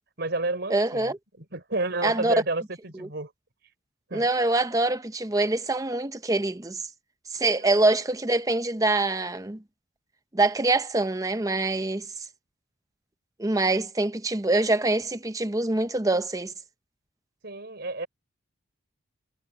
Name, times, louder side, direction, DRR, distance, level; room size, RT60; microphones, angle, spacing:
voice 1, 0.2-3.3 4.1-4.3 7.5-7.8 17.4-18.1, right 2 dB, 55° right, 4.4 m, -31 dB
voice 2, 0.7-1.2 2.0-2.3 3.0-3.1 4.1-6.8 7.3-9.6 10.3-12.3 13.4-16.5, right 2 dB, 15° right, 0.8 m, -25 dB
head